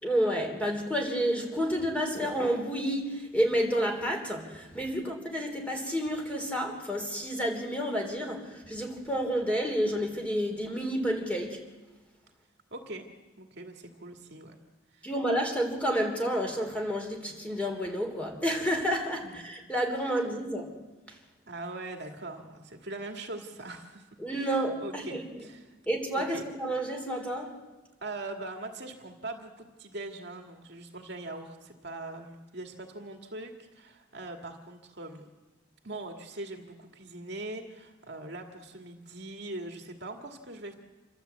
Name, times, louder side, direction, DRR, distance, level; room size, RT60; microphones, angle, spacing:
voice 1, 0.0-11.6 15.0-20.7 21.1-21.2 24.2-25.5 25.8-27.6, equal, 5° left, 3.3 m, -30 dB
voice 2, 12.7-13.1 13.4-14.6 14.9-15.1 19.2-19.3 21.5-25.8 26.3-26.4 28.0-35.3 35.8-40.7, right 2 dB, 55° right, 2.1 m, -41 dB
27.5 x 13.0 x 8.2 m
head